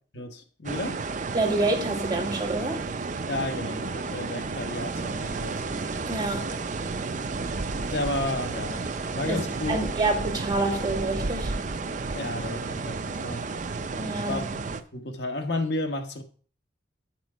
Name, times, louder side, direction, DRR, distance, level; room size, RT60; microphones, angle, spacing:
voice 1, 0.1-1.0 3.3-5.6 7.9-8.9 9.1-9.9 12.1-13.5 14.3-14.6 14.9-16.2, left 2 dB, 65° left, 1.4 m, -32 dB
sound 1, 0.6-14.8, right 3 dB, 40° right, 0.6 m, -32 dB
voice 2, 1.3-2.8 6.1-6.5 9.3-9.4 9.7-11.5 14.0-14.5, right 2 dB, 20° right, 2.0 m, -27 dB
8.0 x 6.2 x 5.0 m
head